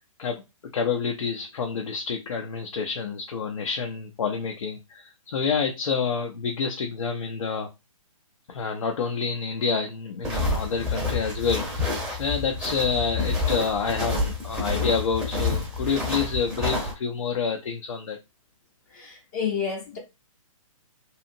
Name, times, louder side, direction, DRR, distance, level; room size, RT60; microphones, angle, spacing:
voice 1, 0.7-7.7 8.5-18.2, left 5 dB, 70° left, 0.6 m, -28 dB
sound 1, 10.2-16.9, left 3 dB, 5° right, 0.6 m, -28 dB
voice 2, 18.9-20.0, left 7 dB, 30° left, 0.7 m, -30 dB
2.8 x 2.4 x 2.5 m
hypercardioid pair, 155°, 18 cm